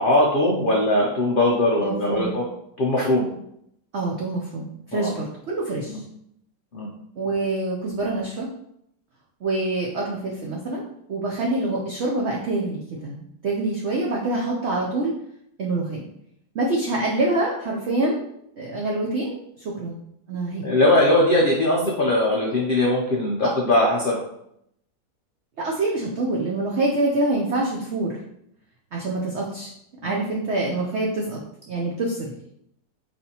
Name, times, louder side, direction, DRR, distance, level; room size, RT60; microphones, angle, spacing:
voice 1, 0.0-2.5 2.8-3.3 4.9-5.1 5.9-6.0 6.7-6.9 20.6-24.2 30.0-30.1, left 1 dB, 75° left, -3 dB, 0.4 m, -20 dB
voice 2, 1.8-2.3 3.9-6.0 7.2-8.5 9.4-15.1 15.6-16.0 16.5-18.2 18.6-20.0 20.3-20.6 23.4-23.5 25.6-28.2 28.9-29.7 30.0-31.4 31.7-32.3, right 2 dB, 65° right, -2 dB, 0.6 m, -26 dB
4.3 x 3.3 x 2.8 m, 0.75 s
omnidirectional pair, 1.8 m